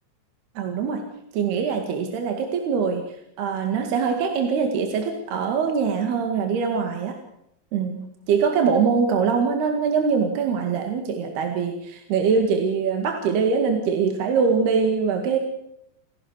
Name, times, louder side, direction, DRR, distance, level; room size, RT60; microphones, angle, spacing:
voice 1, 0.6-1.0 1.3-3.0 3.4-7.2 7.7-15.4, right 5 dB, 65° right, 4 dB, 3.8 m, -23 dB
30.0 x 17.5 x 6.6 m, 0.81 s
omnidirectional pair, 5.3 m